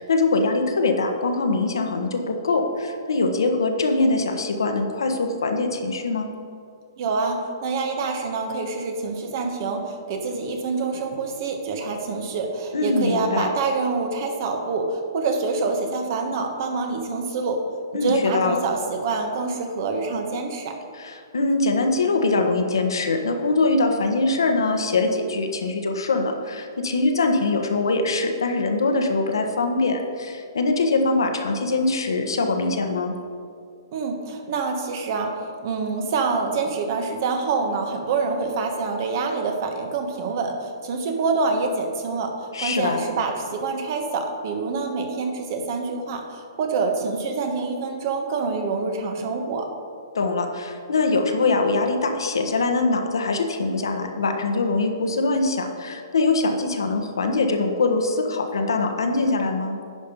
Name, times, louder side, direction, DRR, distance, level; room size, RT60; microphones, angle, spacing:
voice 1, 0.0-6.3 12.7-13.5 17.9-18.6 20.9-33.2 42.5-43.0 50.1-59.8, left 3 dB, 85° left, 4 dB, 1.2 m, -23 dB
voice 2, 7.0-17.6 18.0-20.8 33.9-49.7, right 4 dB, 50° right, 4 dB, 1.4 m, -26 dB
10.5 x 5.2 x 5.4 m, 2.3 s
hypercardioid pair, 135°, 2 cm